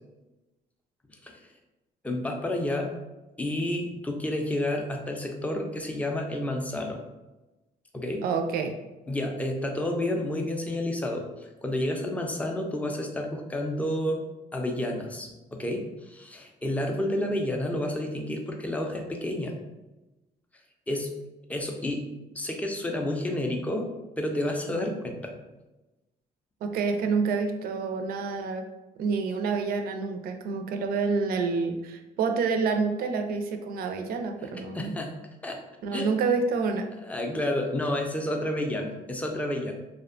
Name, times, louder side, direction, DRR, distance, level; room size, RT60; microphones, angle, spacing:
voice 1, 2.0-2.9 3.4-7.0 7.9-8.2 9.1-14.2 14.5-19.5 20.9-21.1 21.5-22.1 22.3-23.9 24.2-25.3 34.7-35.2 35.4-35.6 35.9-36.2 37.0-39.7, left 1 dB, 10° left, 2 dB, 0.4 m, -30 dB
voice 2, 8.2-8.8 26.6-28.6 29.0-34.9 35.8-36.9, right 4 dB, 60° right, 6 dB, 0.4 m, -28 dB
2.7 x 2.1 x 2.5 m, 1.0 s
cardioid pair, 110°, 17 cm